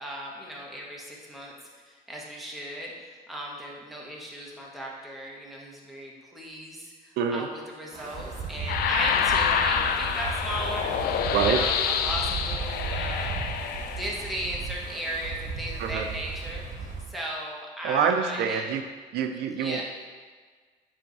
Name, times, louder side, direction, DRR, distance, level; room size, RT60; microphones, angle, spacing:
voice 1, 0.0-1.5 1.9-10.9 11.3-13.5 14.0-18.6 19.6-19.8, equal, ahead, -4 dB, 1.5 m, -36 dB
voice 2, 7.2-7.5 11.3-11.6 15.8-16.1 17.8-18.8 19.1-19.8, right 7 dB, 75° right, 5 dB, 0.5 m, -26 dB
Wind, 7.9-17.1, right 5 dB, 45° right, 1.1 m, -35 dB
sound 1, 8.7-14.4, left 7 dB, 65° left, 0.5 m, -27 dB
9.2 x 3.4 x 4.1 m, 1.5 s
cardioid pair, 110°, 17 cm